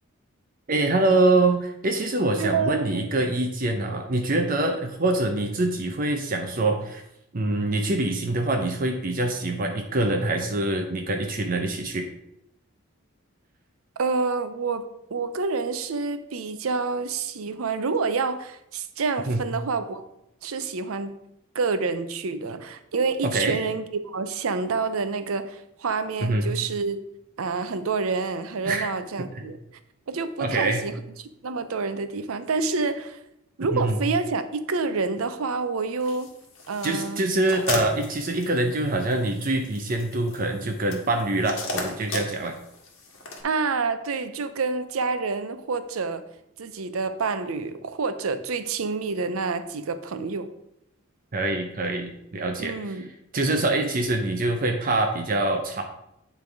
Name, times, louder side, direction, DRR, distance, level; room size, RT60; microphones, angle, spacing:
voice 1, 0.7-7.0 7.3-12.1 19.3-19.4 23.2-23.6 26.2-26.5 28.6-28.9 30.4-30.8 33.7-34.0 36.8-42.5 51.3-53.1 53.3-55.8, right 2 dB, 40° right, 3 dB, 0.6 m, -25 dB
voice 2, 2.4-3.1 14.0-14.9 15.1-20.0 20.4-21.2 21.5-27.0 27.4-29.6 30.1-33.2 33.6-36.3 36.7-37.2 43.4-46.2 46.6-50.5 52.6-53.1, right 4 dB, 80° right, 11 dB, 0.6 m, -28 dB
sound 1, 36.0-43.4, left 2 dB, 60° left, 1.5 m, -37 dB
9.2 x 3.4 x 4.6 m, 0.81 s
head